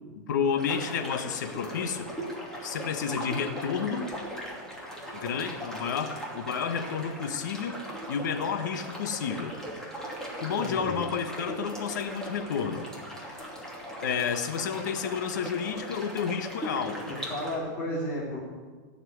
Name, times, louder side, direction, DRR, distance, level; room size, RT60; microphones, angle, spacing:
voice 1, 0.3-2.1 2.6-4.1 5.1-7.8 8.1-9.6 10.4-12.8 14.0-17.1, left 6 dB, 75° left, 8 dB, 1.4 m, -31 dB
sound 1, 0.6-17.6, equal, 5° left, 2.9 m, -39 dB
voice 2, 10.6-11.0 17.1-18.4, left 1 dB, 20° left, -7 dB, 3.0 m, -33 dB
16.5 x 6.0 x 9.3 m, 1.5 s
supercardioid pair, 150°, 10 cm